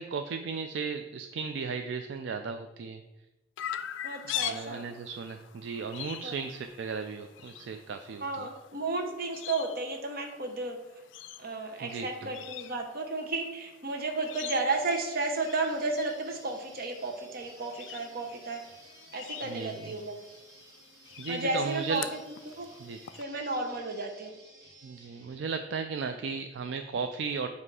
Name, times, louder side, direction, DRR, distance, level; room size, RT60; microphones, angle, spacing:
voice 1, 0.0-3.0 4.4-8.5 11.8-12.3 19.5-19.9 21.2-22.1 22.8-23.0 24.8-27.5, right 5 dB, 70° right, 6 dB, 0.3 m, -35 dB
Chirp tweet, 3.6-23.2, left 11 dB, 85° left, 0.3 m, -44 dB
voice 2, 4.0-4.8 6.2-6.3 8.2-10.8 11.4-18.6 19.1-20.1 21.3-22.0 22.6-22.7 23.1-24.4, right 3 dB, 55° right, 3 dB, 1.0 m, -33 dB
sound 1, 14.7-25.4, right 1 dB, 20° right, 1.7 m, -55 dB
7.5 x 2.7 x 4.7 m, 1.0 s
head